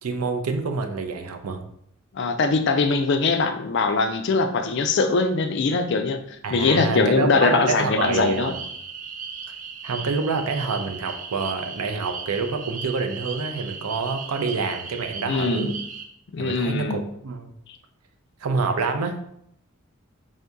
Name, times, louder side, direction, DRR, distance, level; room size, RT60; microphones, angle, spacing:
voice 1, 0.0-1.6 6.4-8.5 9.8-15.7 16.4-17.5 18.4-19.2, right 4 dB, 90° right, 6 dB, 0.5 m, -27 dB
voice 2, 2.1-6.2 6.5-8.5 15.3-15.7 16.3-17.0, left 4 dB, 50° left, 8 dB, 0.4 m, -22 dB
sound 1, 8.0-16.0, right 6 dB, 35° right, 0.3 m, -36 dB
3.6 x 2.7 x 3.5 m, 0.70 s
head